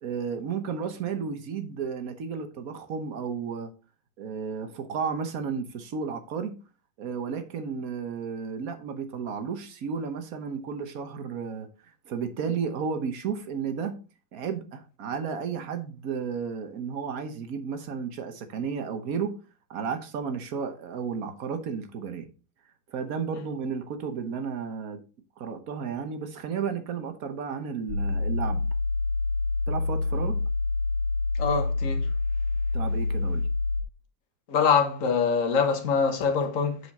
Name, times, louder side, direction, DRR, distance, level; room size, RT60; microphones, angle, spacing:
voice 1, 0.0-3.7 4.2-6.6 7.0-11.7 12.0-14.0 14.3-19.3 19.7-22.3 22.9-25.0 25.4-28.7 29.7-30.4 32.7-33.5, right 6 dB, 55° right, 1.3 m, -33 dB
sound 1, 27.9-33.8, left 3 dB, 70° left, 2.2 m, -27 dB
voice 2, 31.3-32.1 34.5-36.8, left 6 dB, 45° left, 1.5 m, -24 dB
8.3 x 5.0 x 4.2 m
omnidirectional pair, 2.1 m